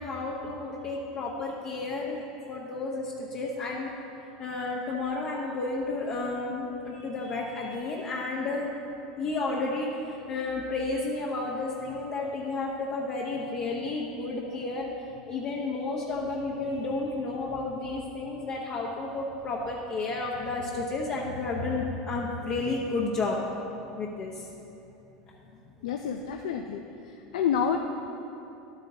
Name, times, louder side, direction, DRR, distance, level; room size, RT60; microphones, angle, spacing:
voice 1, 0.0-2.2 2.5-3.9 4.4-8.7 9.2-14.9 15.2-23.4 24.0-24.5, left 3 dB, 45° left, -4 dB, 1.0 m, -32 dB
voice 2, 25.8-26.8 27.3-27.8, left 8 dB, 85° left, 4 dB, 0.4 m, -28 dB
11.5 x 8.9 x 2.8 m, 2.8 s
supercardioid pair, 105°, 3 cm